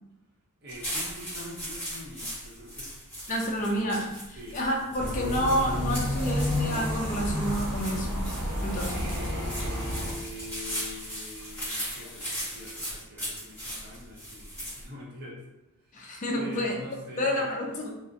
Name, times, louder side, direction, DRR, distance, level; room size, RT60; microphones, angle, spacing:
voice 1, 0.6-2.9 3.3-3.8 4.4-4.7 8.8-15.4 15.8-16.0 16.3-17.6, left 1 dB, 50° right, -4 dB, 0.7 m, -44 dB
sound 1, 0.7-14.8, equal, 10° left, 1.0 m, -38 dB
voice 2, 3.3-8.3 8.6-9.1 15.9-16.8 17.2-17.9, equal, 35° left, -1 dB, 0.4 m, -29 dB
sound 2, 5.0-10.1, left 1 dB, 80° right, 0.8 m, -30 dB
sound 3, 5.1-13.0, left 2 dB, 60° left, 0.7 m, -48 dB
2.5 x 2.0 x 2.5 m, 0.95 s
head